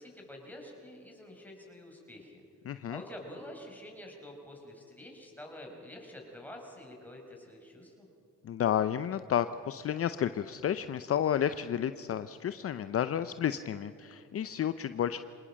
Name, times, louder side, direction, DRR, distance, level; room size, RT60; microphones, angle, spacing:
voice 1, 0.0-2.4 2.9-8.0, left 1 dB, 5° left, 0 dB, 6.1 m, -47 dB
voice 2, 2.7-3.0 8.4-15.2, left 9 dB, 50° left, 12 dB, 0.7 m, -31 dB
26.0 x 19.0 x 7.6 m, 2.6 s
cardioid pair, 90°, 30 cm